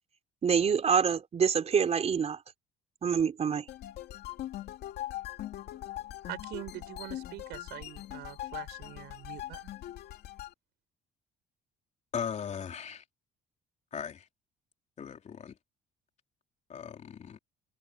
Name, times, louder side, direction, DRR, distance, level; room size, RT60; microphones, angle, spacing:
voice 1, 0.4-2.4 3.0-3.7, right 7 dB, 40° right, 4.4 m, -26 dB
sound 1, 3.7-10.5, left 14 dB, 70° left, 3.3 m, -41 dB
voice 2, 6.2-9.7, right 18 dB, 90° right, 5.0 m, -44 dB
voice 3, 12.1-13.0 13.9-14.3 15.0-15.5 16.7-17.4, left 7 dB, 45° left, 3.5 m, -38 dB
cardioid pair, 110°, 17 cm